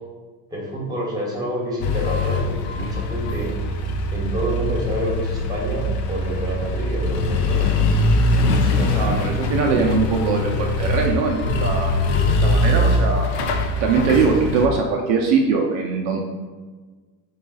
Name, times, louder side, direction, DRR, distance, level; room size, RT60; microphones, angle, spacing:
voice 1, 0.5-3.5 4.1-7.7, equal, 10° right, -4 dB, 1.3 m, -28 dB
sound 1, 1.8-14.7, left 1 dB, 55° left, 0.6 m, -22 dB
voice 2, 8.6-13.3 13.8-16.2, right 5 dB, 60° right, 1 dB, 0.6 m, -22 dB
3.9 x 2.4 x 3.9 m, 1.4 s
supercardioid pair, 115°, 48 cm